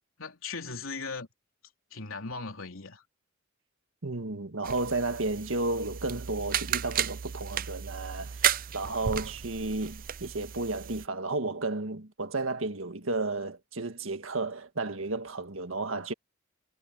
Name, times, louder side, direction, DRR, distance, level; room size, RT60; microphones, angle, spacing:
voice 1, 0.2-1.3 1.9-3.0, left 4 dB, 85° left, 3.4 m, -38 dB
voice 2, 4.0-8.4 8.7-16.1, right 2 dB, 75° right, 1.8 m, -32 dB
sound 1, 4.6-11.1, right 9 dB, 45° right, 0.5 m, -33 dB
head